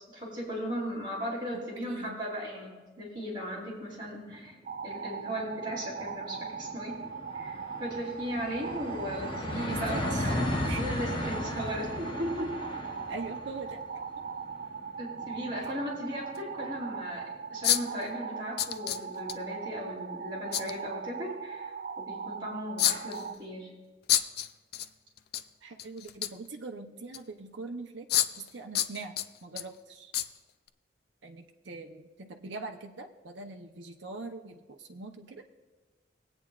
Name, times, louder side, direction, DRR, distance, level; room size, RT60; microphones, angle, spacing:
voice 1, 0.1-4.5 4.8-6.9 7.3-10.4 10.7-12.5 15.0-23.7, equal, 25° right, -5 dB, 3.5 m, -37 dB
voice 2, 1.5-2.2 9.5-10.3 10.6-10.8 11.2-11.3 13.1-13.8 15.6-15.7 25.6-28.1 28.4-29.2 29.4-30.1 31.2-35.5, right 3 dB, 75° right, 3 dB, 0.7 m, -42 dB
sound 1, 4.5-4.6 4.9-5.0 5.3-16.7, left 1 dB, 25° left, 0.8 m, -36 dB
sound 2, 4.6-23.4, right 6 dB, 50° right, 0.3 m, -40 dB
sound 3, 13.7-13.8 15.6-15.7 16.4-16.5 17.6-18.0 18.6-19.3 20.5-20.7 22.8-23.3 24.1-24.9 25.2-25.4 25.8-26.5 27.1-27.2 28.1-28.5 28.8-29.6 30.1-30.3 30.7-30.8, left 11 dB, 55° left, 0.4 m, -28 dB
20.5 x 8.8 x 2.4 m, 1.2 s
head